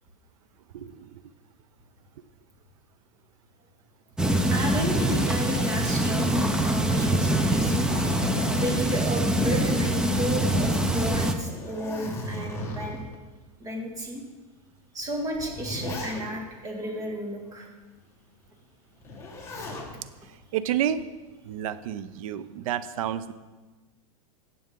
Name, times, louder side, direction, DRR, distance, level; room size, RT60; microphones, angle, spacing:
voice 1, 0.7-1.2 20.2-21.0 21.4-23.3, right 10 dB, 70° right, 14 dB, 0.7 m, -30 dB
sound 1, 4.2-11.3, right 1 dB, 5° right, 0.6 m, -24 dB
voice 2, 4.5-6.3 6.6-7.9 8.5-13.0 13.6-14.2 14.9-17.7, equal, 20° right, 1 dB, 2.1 m, -32 dB
Zipper (clothing), 7.6-10.3 10.7-10.8 11.3-13.2 13.9-14.0 15.0-16.6 19.0-19.9 21.3-21.8, left 1 dB, 15° left, 1.9 m, -36 dB
17.0 x 7.0 x 3.8 m, 1.3 s
supercardioid pair, 135°, 18 cm